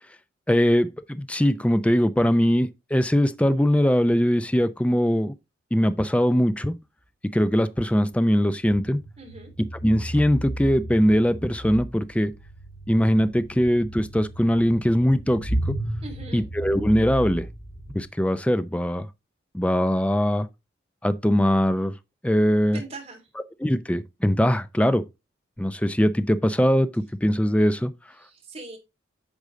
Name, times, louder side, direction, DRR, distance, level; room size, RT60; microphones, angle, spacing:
voice 1, 0.5-5.3 5.7-6.7 7.3-9.0 9.8-12.3 12.9-15.7 16.3-17.5 17.9-19.1 19.5-20.5 21.0-21.9 22.2-22.8 23.6-25.0 25.6-27.9, equal, 5° left, 0.5 m, -21 dB
sound 1, 8.6-18.0, right 1 dB, 75° left, 2.6 m, -34 dB
voice 2, 9.2-9.5 16.0-16.4 22.7-23.3 28.2-28.8, right 2 dB, 30° right, 2.7 m, -40 dB
8.2 x 5.3 x 3.7 m
head